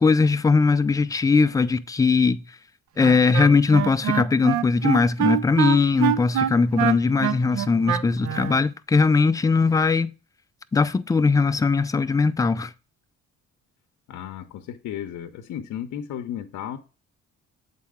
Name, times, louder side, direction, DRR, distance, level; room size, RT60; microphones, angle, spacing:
voice 1, 0.0-2.4 3.0-10.1 10.7-12.7, left 4 dB, 10° left, 0.3 m, -20 dB
Wind instrument woodwind instrument, 3.0-8.6, right 11 dB, 70° right, 0.5 m, -25 dB
voice 2, 14.1-16.8, left 10 dB, 75° left, 0.7 m, -34 dB
7.5 x 4.0 x 3.6 m
cardioid pair, 90°, 30 cm